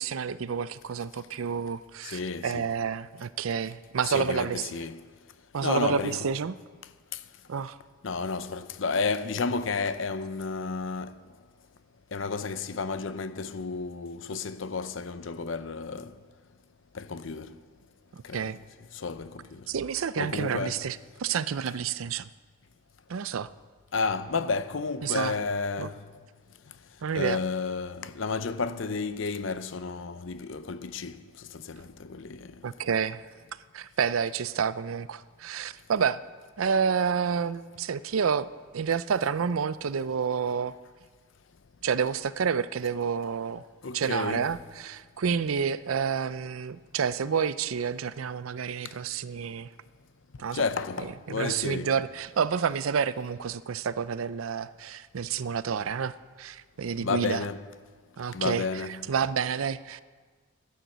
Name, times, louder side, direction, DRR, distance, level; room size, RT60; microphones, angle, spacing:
voice 1, 0.0-4.8 5.5-6.5 7.5-7.8 18.1-18.6 19.7-22.3 23.1-23.5 25.0-25.4 25.8-25.9 27.0-27.4 32.6-33.2 33.7-36.2 36.6-38.5 38.7-40.7 41.8-43.6 43.9-49.7 50.4-50.6 51.4-57.4 58.2-58.6 59.1-60.0, right 6 dB, 90° right, 0.5 m, -29 dB
voice 2, 2.0-2.8 4.0-5.0 5.6-6.3 8.0-11.1 12.1-16.1 16.9-17.6 18.2-18.5 18.9-19.7 20.2-20.8 23.9-26.0 27.1-31.2 31.5-32.5 43.8-44.6 50.5-51.9 57.0-57.7 58.3-59.1, left 4 dB, 70° left, 0.7 m, -32 dB
12.0 x 10.5 x 8.0 m
head